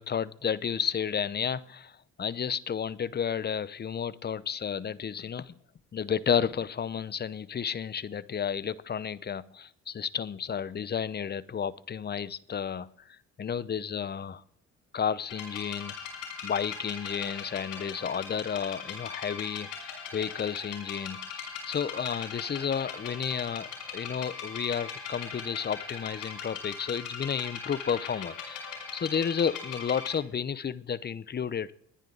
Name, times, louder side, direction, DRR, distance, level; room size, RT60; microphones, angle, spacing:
voice 1, 0.0-1.9 2.2-5.5 5.9-12.9 13.4-14.4 14.9-15.9 16.4-19.7 20.1-31.7, left 7 dB, 35° left, 18 dB, 0.7 m, -32 dB
sound 1, 15.2-30.1, left 6 dB, 85° left, 5.6 m, -40 dB
20.0 x 10.5 x 3.9 m, 0.68 s
cardioid pair, 90°, 30 cm